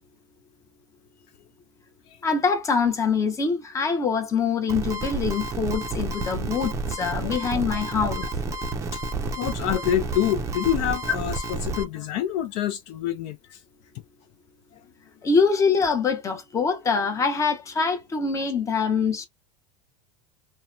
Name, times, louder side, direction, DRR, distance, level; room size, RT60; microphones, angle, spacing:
voice 1, 2.2-8.3 15.2-19.3, left 5 dB, 20° left, 0.7 m, -24 dB
sound 1, 4.7-11.8, right 3 dB, 20° right, 0.5 m, -30 dB
voice 2, 9.4-11.3 11.6-13.6, left 11 dB, 55° left, 0.4 m, -26 dB
2.8 x 2.1 x 2.3 m
supercardioid pair, 125°, 16 cm